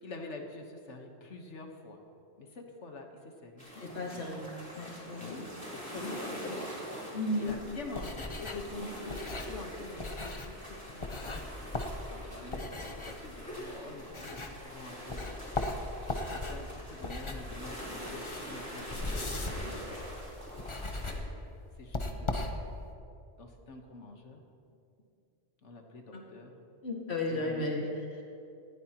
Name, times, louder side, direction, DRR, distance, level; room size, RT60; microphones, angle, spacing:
voice 1, 0.0-2.0 2.4-4.2 5.1-5.5 5.7-6.6 7.4-11.7 12.1-15.4 16.3-20.1 21.0-22.6 23.4-24.4 25.6-26.6 27.3-27.7, left 3 dB, 85° left, 3 dB, 1.6 m, -46 dB
sound 1, 3.6-21.2, equal, 5° left, 3.6 m, -44 dB
voice 2, 3.8-4.4 4.7-5.5 7.1-7.5 8.8-8.9 12.4-12.5 26.1-26.2 26.8-28.2, left 2 dB, 65° left, -1 dB, 2.3 m, -34 dB
sound 2, 7.5-14.8 15.1-22.9, left 2 dB, 30° left, 0.8 m, -38 dB
18.5 x 14.5 x 3.0 m, 2.6 s
omnidirectional pair, 1.2 m